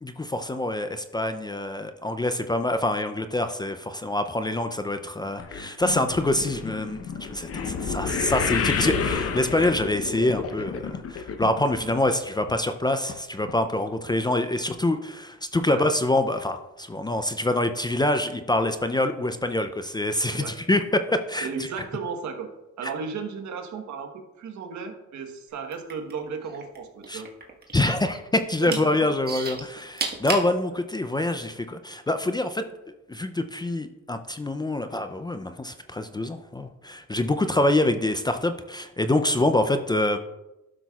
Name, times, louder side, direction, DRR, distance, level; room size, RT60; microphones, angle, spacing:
voice 1, 0.0-21.7 22.8-22.9 27.1-27.2 27.7-32.6 33.1-40.2, left 1 dB, 15° left, 8 dB, 0.4 m, -25 dB
sound 1, 5.4-11.8 12.1-12.5 13.1-13.2 13.5-13.6, left 6 dB, 50° left, 0.9 m, -30 dB
voice 2, 21.4-22.5 22.8-24.1 24.4-27.3 28.6-29.1, right 5 dB, 70° right, 5 dB, 1.3 m, -34 dB
sound 2, 25.6-26.8 27.0-28.1 28.5-28.8 29.3-30.5 31.2-31.3, right 4 dB, 30° right, 1.4 m, -31 dB
12.0 x 5.9 x 2.4 m, 0.98 s
cardioid pair, 90°, 30 cm